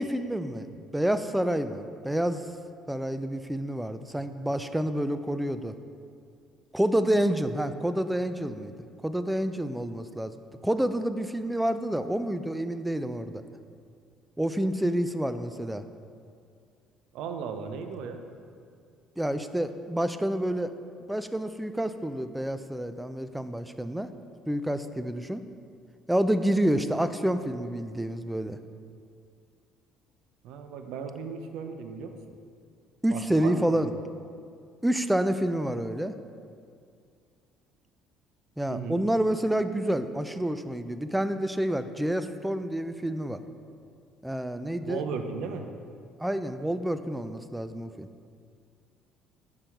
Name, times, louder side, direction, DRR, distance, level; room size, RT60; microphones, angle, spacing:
voice 1, 0.0-0.7 0.9-2.4 2.9-5.7 6.7-8.7 9.0-10.3 10.6-13.4 14.4-15.8 19.2-20.7 21.1-24.1 24.5-25.4 26.1-28.6 33.0-33.9 34.8-36.1 38.6-43.4 44.2-45.0 46.2-48.1, right 1 dB, 5° right, 11 dB, 0.3 m, -28 dB
voice 2, 17.1-18.2 30.4-32.1 33.1-33.9 38.7-39.0 44.8-45.7, right 5 dB, 70° right, 6 dB, 0.4 m, -36 dB
5.8 x 3.8 x 4.5 m, 2.3 s
hypercardioid pair, 60°, 0 cm